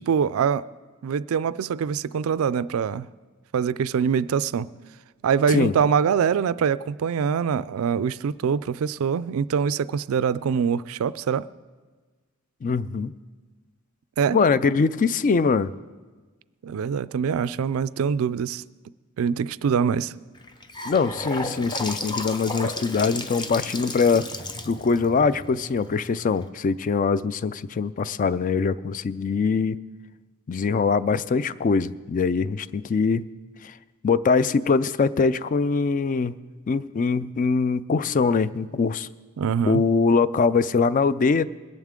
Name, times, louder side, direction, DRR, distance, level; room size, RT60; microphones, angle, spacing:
voice 1, 0.1-0.7 1.0-3.1 3.5-4.7 5.2-11.5 14.2-14.4 16.6-18.6 19.2-20.1 39.4-39.8, right 7 dB, 65° right, 0.3 m, -24 dB
voice 2, 12.6-13.1 14.3-15.7 20.9-24.3 24.7-29.8 30.5-33.3 33.6-33.7 34.0-36.4 36.7-39.1 39.7-41.5, left 4 dB, 35° left, 0.3 m, -22 dB
Gurgling / Sink (filling or washing) / Bathtub (filling or washing), 20.3-26.4, left 2 dB, 20° left, 0.7 m, -33 dB
21.5 x 10.5 x 3.7 m
head